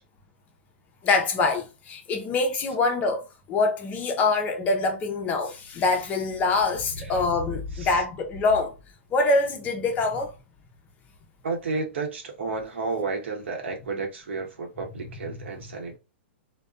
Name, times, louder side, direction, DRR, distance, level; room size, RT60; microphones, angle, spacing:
voice 1, 1.0-8.7 9.1-10.3, left 3 dB, 25° left, 0.6 m, -24 dB
voice 2, 11.4-16.0, right 4 dB, 75° right, 0.9 m, -32 dB
2.4 x 2.2 x 2.3 m
hypercardioid pair, 130°, 6 cm